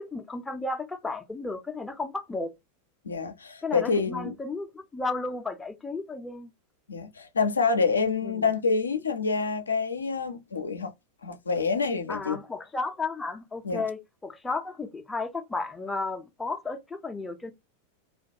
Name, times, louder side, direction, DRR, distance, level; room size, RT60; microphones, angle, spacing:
voice 1, 0.0-2.5 3.6-6.5 8.2-8.4 12.1-17.5, left 3 dB, 10° left, 0.4 m, -33 dB
voice 2, 3.0-4.4 6.9-10.9 11.2-12.4 13.6-13.8, left 4 dB, 75° left, 0.4 m, -27 dB
2.2 x 2.2 x 2.6 m
figure-of-eight pair, 90°, 0 cm